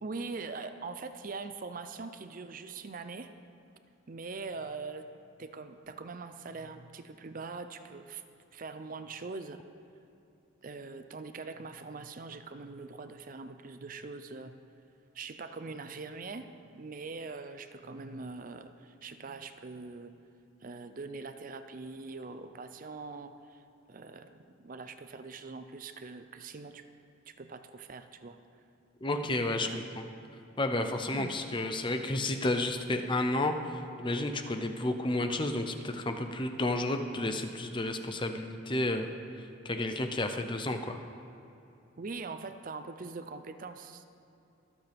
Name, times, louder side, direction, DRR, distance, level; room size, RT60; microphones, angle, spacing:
voice 1, 0.0-3.3 4.1-5.1 5.4-8.2 8.5-9.6 10.6-14.6 15.1-20.1 20.6-23.6 23.9-26.9 27.3-28.4 29.6-29.8 31.1-31.4 42.0-44.0, right 4 dB, 40° right, 9 dB, 0.5 m, -42 dB
voice 2, 29.0-29.7 30.0-30.1 30.6-39.1 39.6-41.0, left 2 dB, 25° left, 6 dB, 0.7 m, -31 dB
24.5 x 8.3 x 3.5 m, 2.9 s
head